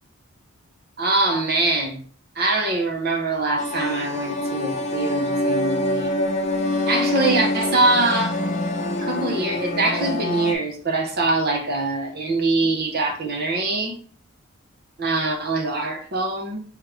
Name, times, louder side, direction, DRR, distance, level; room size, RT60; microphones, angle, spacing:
voice 1, 1.0-2.0 2.3-6.1 6.9-8.4 9.0-14.0 15.0-16.6, right 2 dB, 50° right, 3 dB, 0.9 m, -23 dB
sound 1, 3.6-10.5, left 1 dB, 35° left, 0.6 m, -25 dB
4.9 x 3.2 x 3.3 m, 0.42 s
head